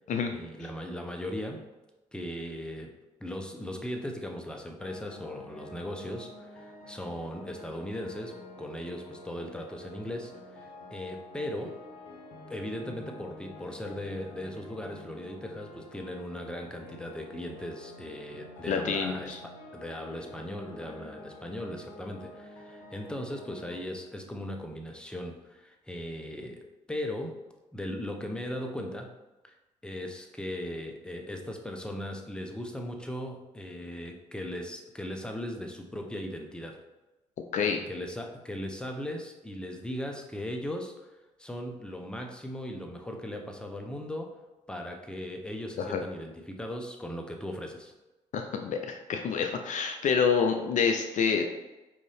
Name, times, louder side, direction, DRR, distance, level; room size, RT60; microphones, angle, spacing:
voice 1, 0.3-1.7 2.1-11.8 12.5-19.4 19.7-27.4 27.7-29.1 29.4-29.5 29.8-36.8 37.6-40.9 41.4-44.4 44.7-47.9, left 1 dB, 5° left, 3 dB, 0.8 m, -38 dB
sound 1, 4.8-23.8, left 2 dB, 70° left, 1.0 m, -48 dB
voice 2, 18.7-19.4 37.5-37.8 45.8-46.0 48.3-51.5, left 6 dB, 55° left, 5 dB, 0.5 m, -27 dB
5.1 x 2.7 x 3.3 m, 1.0 s
hypercardioid pair, 55°, 15 cm